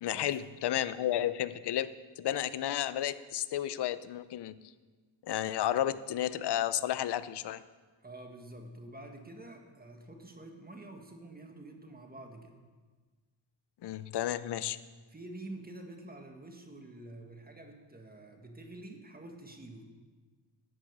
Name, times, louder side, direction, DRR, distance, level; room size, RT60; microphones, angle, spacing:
voice 1, 0.0-4.5 5.2-7.6 13.8-14.8, left 11 dB, 60° left, 15 dB, 0.6 m, -32 dB
voice 2, 8.0-12.5 15.1-19.8, right 2 dB, 20° right, 4 dB, 1.6 m, -48 dB
11.0 x 8.8 x 6.6 m, 1.4 s
cardioid pair, 95°, 45 cm